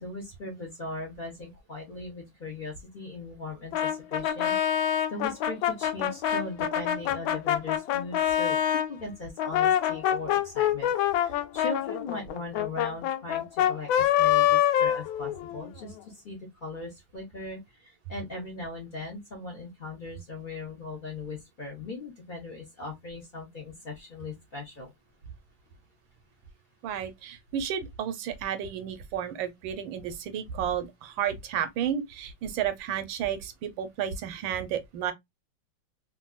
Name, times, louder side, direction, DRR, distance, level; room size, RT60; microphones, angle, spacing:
voice 1, 0.0-10.9 11.2-24.9, left 3 dB, 75° left, 0.4 m, -39 dB
Brass instrument, 3.7-8.9 9.4-15.7, left 10 dB, 90° left, 1.3 m, -26 dB
voice 2, 26.8-35.1, right 9 dB, 90° right, 1.4 m, -32 dB
3.2 x 2.5 x 2.2 m
omnidirectional pair, 2.1 m